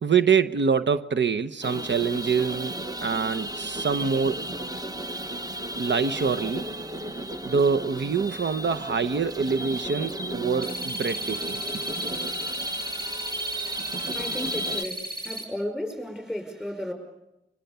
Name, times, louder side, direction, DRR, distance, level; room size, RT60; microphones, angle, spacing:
voice 1, 0.0-4.5 5.7-6.7 7.4-11.6, right 6 dB, 80° right, 9 dB, 0.9 m, -25 dB
sound 1, 1.6-14.8, right 1 dB, 20° right, 1.1 m, -34 dB
sound 2, 10.6-15.4, right 1 dB, 55° right, 7.7 m, -35 dB
voice 2, 14.1-16.9, left 1 dB, 5° right, 5 dB, 5.4 m, -34 dB
29.5 x 24.5 x 6.8 m, 0.90 s
wide cardioid pair, 110°, 19 cm